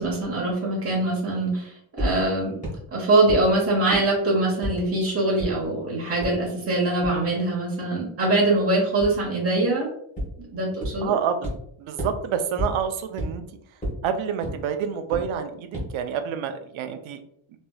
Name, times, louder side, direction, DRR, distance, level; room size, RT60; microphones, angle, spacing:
voice 1, 0.0-2.6 2.9-9.9 10.5-11.1, right 2 dB, 30° right, -4 dB, 1.2 m, -23 dB
sound 1, 2.0-2.1 2.6-2.7 3.3-3.4 3.9-4.0 4.6-4.7 5.4-5.5 6.2-6.3 7.0-7.1 9.0-9.1 10.2-10.3 10.8-10.9 11.4-11.5 12.0-12.1 12.6-12.7 13.2-13.3 13.8-13.9 14.4-14.5 15.1-15.2 15.7-15.8, equal, 15° left, 1.4 m, -27 dB
voice 2, 11.0-11.5 11.8-13.4 14.0-17.2, right 7 dB, 70° right, 9 dB, 0.6 m, -28 dB
3.1 x 3.0 x 2.2 m, 0.69 s
cardioid pair, 145°, 50 cm